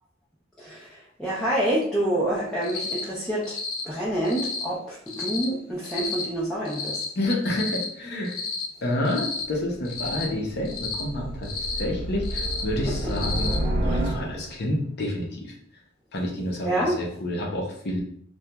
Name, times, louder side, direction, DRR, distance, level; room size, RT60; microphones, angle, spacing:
voice 1, 0.6-3.6 3.8-7.0 16.6-16.9, right 1 dB, 5° left, -7 dB, 0.4 m, -27 dB
Cricket, 2.6-3.0 3.4-3.8 4.2-4.6 5.1-5.4 5.8-6.2 6.7-7.0 7.4-7.8 8.2-8.6 9.0-9.4 9.8-10.2 10.7-11.0 11.4-11.8 12.2-12.6 13.1-13.5, left 5 dB, 90° left, 0.7 m, -32 dB
voice 2, 7.2-8.4 8.8-11.5 11.8-15.5 16.1-18.0, left 1 dB, 50° left, -1 dB, 0.6 m, -29 dB
sound 1, 9.4-14.7, right 1 dB, 60° right, 0.5 m, -30 dB
2.8 x 2.2 x 2.2 m, 0.64 s
head